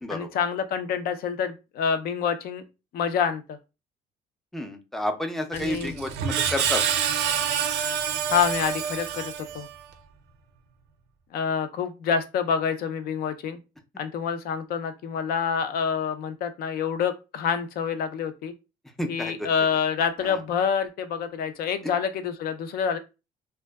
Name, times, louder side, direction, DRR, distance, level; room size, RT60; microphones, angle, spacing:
voice 1, 0.1-2.6 2.9-3.6 5.5-5.9 8.3-9.7 11.3-13.6 14.0-18.5 19.1-23.0, left 7 dB, 65° left, 10 dB, 0.5 m, -27 dB
voice 2, 4.5-6.8 19.0-19.5 20.2-20.4, left 1 dB, ahead, 4 dB, 0.4 m, -30 dB
Screech, 5.5-9.8, right 8 dB, 85° right, 0.4 m, -27 dB
2.5 x 2.2 x 2.2 m, 0.28 s
cardioid pair, 110°, 17 cm